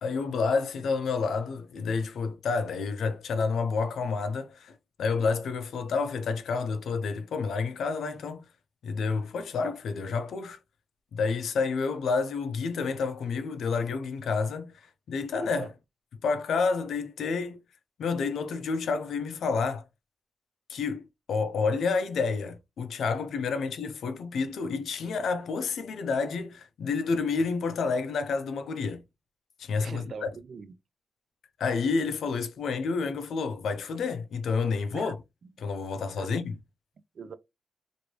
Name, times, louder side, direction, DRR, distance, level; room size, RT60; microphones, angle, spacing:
voice 1, 0.0-8.5 8.8-10.6 11.1-14.7 15.1-15.7 16.2-17.6 18.0-19.8 20.7-21.0 21.3-29.0 29.6-30.3 31.6-35.1 35.6-36.6, left 4 dB, 80° left, 0.5 m, -29 dB
voice 2, 29.8-30.8 34.9-35.1 35.4-35.5 36.2-36.3 37.1-37.3, right 5 dB, 50° right, 0.3 m, -41 dB
3.1 x 2.6 x 2.8 m
wide cardioid pair, 170°, 0 cm